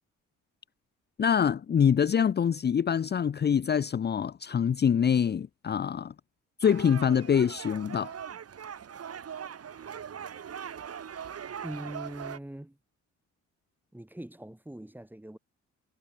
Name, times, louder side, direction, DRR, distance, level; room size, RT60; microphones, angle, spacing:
voice 1, 1.2-6.1 6.6-8.1, left 7 dB, 35° left, 0.7 m, -25 dB
sound 1, 6.6-12.4, right 8 dB, 55° right, 5.3 m, -41 dB
voice 2, 11.6-12.8 13.9-15.4, right 1 dB, 5° right, 4.2 m, -42 dB
cardioid pair, 90°, 30 cm